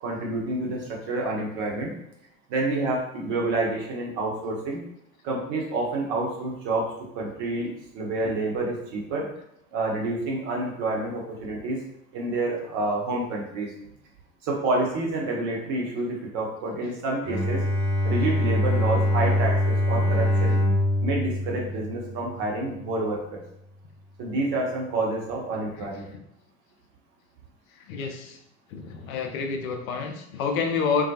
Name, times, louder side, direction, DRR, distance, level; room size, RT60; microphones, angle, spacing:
voice 1, 0.0-1.9 2.5-4.8 5.2-6.9 7.1-9.3 9.7-11.8 12.1-13.7 14.4-17.6 18.0-20.6 21.0-23.4 24.2-26.1, right 2 dB, 50° right, -1 dB, 0.9 m, -28 dB
Bowed string instrument, 17.2-22.5, left 1 dB, 15° right, 1.0 m, -24 dB
voice 2, 27.9-28.4 28.7-31.1, left 5 dB, 70° left, 4 dB, 0.5 m, -28 dB
2.3 x 2.2 x 2.7 m, 0.77 s
figure-of-eight pair, 70°, 43 cm